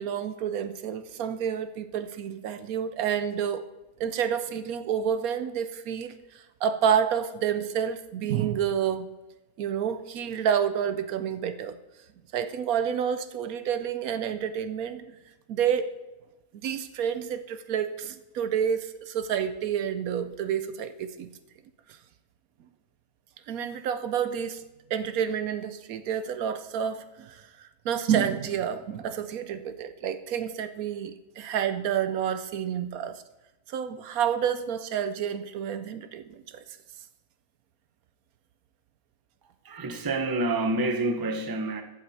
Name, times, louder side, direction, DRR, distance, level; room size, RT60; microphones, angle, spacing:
voice 1, 0.0-3.7 4.0-9.1 9.6-11.8 12.3-15.1 15.5-15.9 16.5-21.3 23.5-24.6 24.9-33.2 33.7-36.6, right 8 dB, 75° right, 1.1 m, -29 dB
voice 2, 39.6-41.8, right 2 dB, 20° right, 0.7 m, -28 dB
15.0 x 7.8 x 4.2 m
omnidirectional pair, 1.6 m